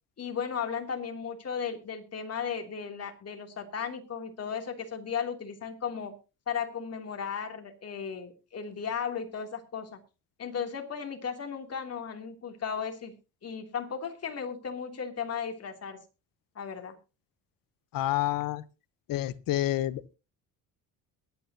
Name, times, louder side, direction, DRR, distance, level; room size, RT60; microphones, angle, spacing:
voice 1, 0.2-6.1 6.5-10.0 10.4-13.1 13.4-16.0 16.5-16.9, left 7 dB, 40° left, 3.1 m, -35 dB
voice 2, 17.9-18.6 19.1-20.2, left 14 dB, 60° left, 1.0 m, -29 dB
22.0 x 9.3 x 2.9 m
supercardioid pair, 90°, 38 cm